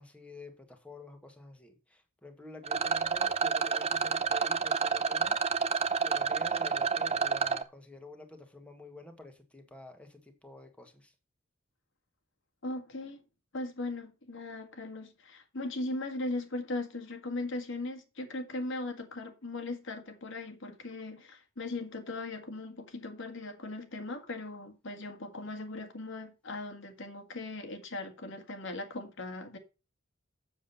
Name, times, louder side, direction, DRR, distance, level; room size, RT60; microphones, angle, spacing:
voice 1, 0.0-5.4 6.0-11.1, left 1 dB, 5° left, 1.6 m, -49 dB
Rattle, 2.6-7.6, right 5 dB, 30° right, 0.7 m, -29 dB
voice 2, 12.6-13.2 13.5-29.6, left 2 dB, 65° left, 1.9 m, -38 dB
7.5 x 7.4 x 5.5 m
head